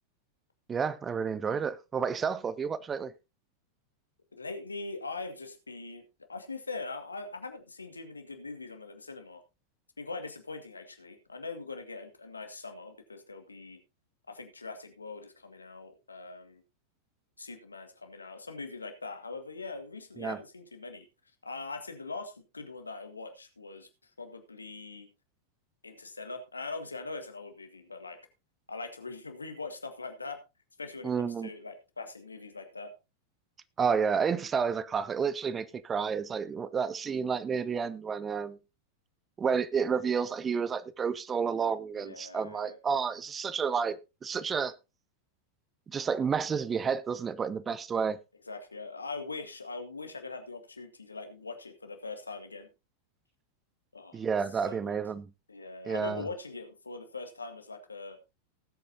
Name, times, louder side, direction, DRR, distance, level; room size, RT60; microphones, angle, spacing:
voice 1, 0.7-3.1 20.2-20.4 31.0-31.5 33.8-38.6 39.4-44.0 44.2-44.7 45.9-48.2 54.1-55.2 55.9-56.2, right 6 dB, 20° right, 0.7 m, -30 dB
voice 2, 4.4-6.0 6.3-9.4 10.0-13.8 14.3-16.6 17.4-21.1 21.4-23.9 24.2-25.1 25.8-28.2 28.7-30.4 30.8-32.9 41.9-42.8 48.5-52.7 53.9-54.2 54.7-55.0 55.5-58.2, left 3 dB, 80° left, 1.9 m, -42 dB
19.0 x 8.4 x 2.7 m
figure-of-eight pair, 90°, 0 cm